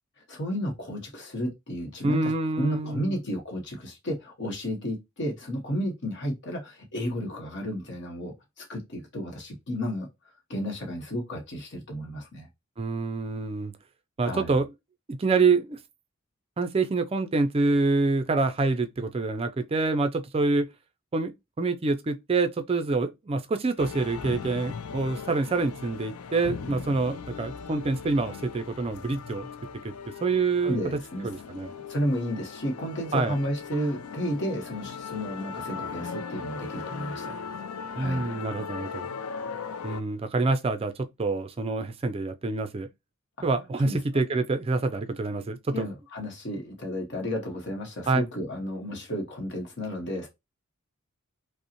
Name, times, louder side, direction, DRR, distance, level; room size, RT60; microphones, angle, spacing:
voice 1, 0.3-2.3 2.6-10.1 10.5-12.5 14.2-14.6 30.6-31.3 31.9-37.4 37.9-38.2 43.8-44.0 45.7-50.3, equal, 55° left, 0.9 m, -32 dB
voice 2, 2.0-3.1 12.8-13.7 14.2-14.7 15.1-15.8 16.6-20.7 21.1-21.3 21.6-29.5 29.8-29.9 30.2-30.8 31.2-31.7 33.1-33.4 38.0-39.1 39.8-42.9 43.4-45.9 48.1-48.2, right 3 dB, 25° right, 0.4 m, -26 dB
sound 1, 23.8-40.0, left 5 dB, 80° left, 0.4 m, -38 dB
5.2 x 2.0 x 2.9 m
head